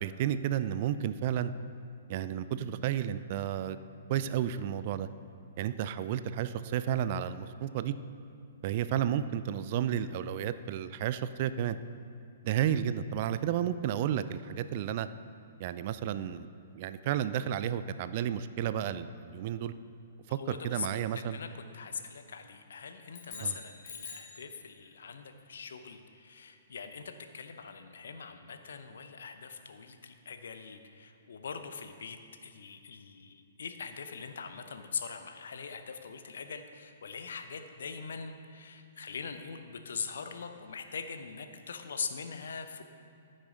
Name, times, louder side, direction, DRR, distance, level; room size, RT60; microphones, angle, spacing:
voice 1, 0.0-1.5 2.1-5.1 5.6-7.9 8.6-11.8 12.4-15.1 15.6-16.5 16.7-19.7 20.3-21.4 23.4-23.6, right 10 dB, 45° right, 13 dB, 0.4 m, -32 dB
voice 2, 20.3-20.9 21.1-21.5 21.7-42.8, left 6 dB, 65° left, 7 dB, 0.7 m, -42 dB
sound 1, 23.1-24.4, left 5 dB, 40° left, 2.0 m, -46 dB
14.5 x 6.4 x 3.9 m, 2.5 s
figure-of-eight pair, 115°, 0 cm